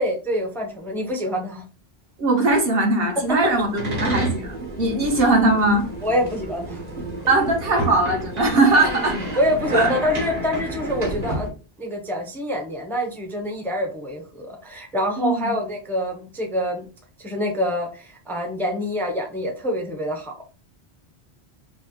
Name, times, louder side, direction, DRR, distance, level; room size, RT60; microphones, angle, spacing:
voice 1, 0.0-1.6 6.0-6.8 9.4-11.5 11.8-16.8 17.2-20.5, equal, ahead, 0.5 m, -26 dB
voice 2, 2.2-5.8 7.3-9.2 9.7-9.9 15.2-15.5, right 2 dB, 60° right, 1.2 m, -20 dB
sound 1, 3.2-11.5, right 1 dB, 40° right, 1.0 m, -30 dB
5.3 x 2.1 x 2.9 m
omnidirectional pair, 1.1 m